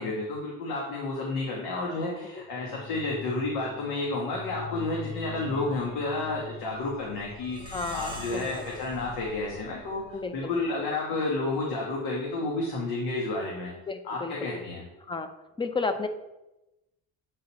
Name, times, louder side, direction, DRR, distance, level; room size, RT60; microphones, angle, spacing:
voice 1, 0.0-10.0 10.3-13.7 14.0-14.8, left 2 dB, 90° left, -3 dB, 1.4 m, -31 dB
sound 1, 2.5-10.8, left 4 dB, 70° left, 1.1 m, -43 dB
Plucked string instrument, 7.5-10.3, right 2 dB, 15° right, 1.0 m, -45 dB
voice 2, 7.7-8.6 10.1-10.7 13.9-14.6 15.0-15.3 15.6-16.1, left 4 dB, 15° left, 8 dB, 0.6 m, -33 dB
8.4 x 3.9 x 4.1 m, 0.96 s
cardioid pair, 125°, 36 cm